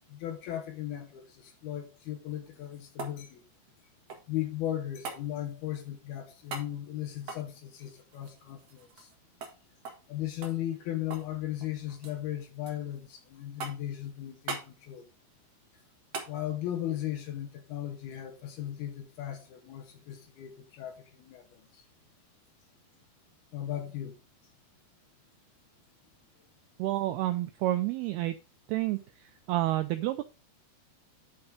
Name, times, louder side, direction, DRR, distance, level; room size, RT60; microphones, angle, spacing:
voice 1, 0.1-3.4 4.3-9.1 10.1-15.0 16.3-21.7 23.5-24.2, left 12 dB, 70° left, 2.7 m, -37 dB
sound 1, 2.4-4.4 5.0-5.2 6.5-6.7 7.2-9.2 9.4-9.6 9.8-10.1 10.4-11.3 11.6-12.2 12.7-13.2 13.6-14.0 14.5-14.7 16.1-16.3 18.7-18.8, right 4 dB, 60° right, 1.7 m, -41 dB
voice 2, 26.8-28.4 28.7-29.0 29.5-30.2, right 15 dB, 90° right, 2.2 m, -29 dB
9.4 x 4.4 x 4.8 m
omnidirectional pair, 5.1 m